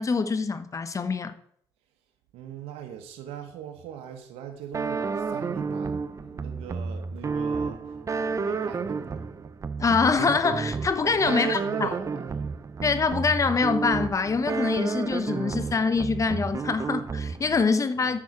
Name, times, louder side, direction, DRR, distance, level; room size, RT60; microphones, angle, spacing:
voice 1, 0.0-1.3 9.8-11.9 12.8-18.2, left 4 dB, 35° left, 0.7 m, -25 dB
voice 2, 2.3-7.8 8.1-9.1 11.0-12.3 18.0-18.2, right 9 dB, 85° right, 1.0 m, -40 dB
sound 1, 4.7-17.6, right 4 dB, 30° right, 0.5 m, -31 dB
8.5 x 6.2 x 4.8 m
cardioid pair, 80°, 10 cm